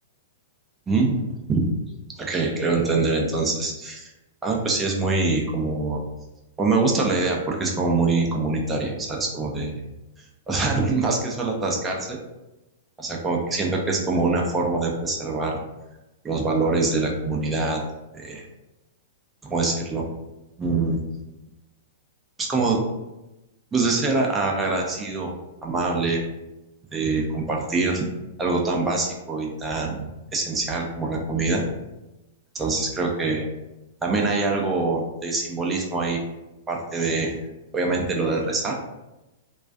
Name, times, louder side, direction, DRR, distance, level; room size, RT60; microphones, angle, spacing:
voice 1, 0.9-1.7 2.2-4.1 4.4-6.0 6.6-9.8 10.5-12.2 13.0-15.6 16.2-17.8 18.1-18.4 19.4-20.1 20.6-21.0 22.5-22.8 23.7-25.3 25.6-26.2 26.9-28.0 28.4-31.7 32.5-33.5 34.0-36.2 36.7-37.3 37.7-38.8, right 3 dB, 15° right, -1 dB, 0.5 m, -24 dB
2.3 x 2.3 x 2.3 m, 1.0 s
figure-of-eight pair, 105°, 0 cm